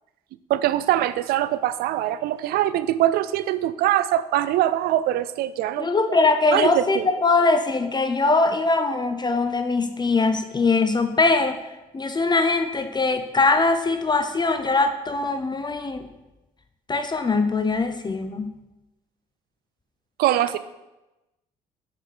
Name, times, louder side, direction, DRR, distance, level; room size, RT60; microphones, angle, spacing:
voice 1, 0.5-6.2 6.5-7.1 20.2-20.6, right 13 dB, 70° right, 15 dB, 0.4 m, -23 dB
voice 2, 5.8-11.6 11.9-16.1 16.9-18.5, left 3 dB, 25° left, 8 dB, 0.6 m, -22 dB
5.9 x 4.9 x 5.4 m, 1.0 s
supercardioid pair, 60°, 17 cm